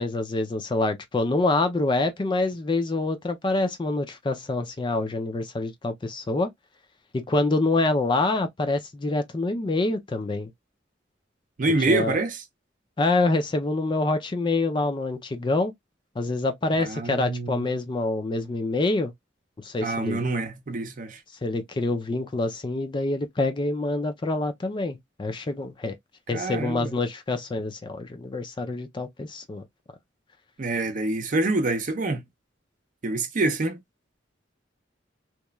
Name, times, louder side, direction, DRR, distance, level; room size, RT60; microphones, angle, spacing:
voice 1, 0.0-6.5 7.1-10.5 11.9-12.2 13.0-15.7 16.2-19.1 19.6-20.2 21.4-26.0 26.3-29.6, left 2 dB, 25° left, 0.4 m, -26 dB
voice 2, 11.6-12.4 16.8-17.7 19.8-21.2 26.3-26.9 30.6-32.2 33.0-33.8, right 2 dB, 45° right, 0.5 m, -26 dB
2.9 x 2.3 x 2.2 m
head